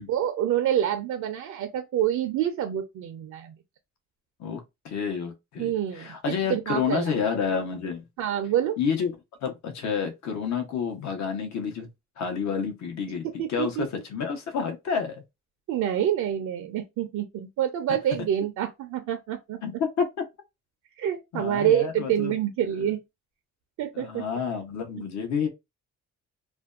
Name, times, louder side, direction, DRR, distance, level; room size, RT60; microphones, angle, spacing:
voice 1, 0.1-3.5 5.6-7.0 8.2-8.8 13.4-13.9 15.7-19.6 21.0-23.0 23.8-24.3, right 10 dB, 70° right, 0.5 m, -27 dB
voice 2, 4.4-8.0 8.8-9.1 9.4-11.9 12.2-15.2 17.9-18.0 19.6-20.2 21.3-22.3 22.6-22.9 23.9-25.5, left 6 dB, 65° left, 0.8 m, -29 dB
2.5 x 2.2 x 2.3 m
cardioid pair, 90°, 30 cm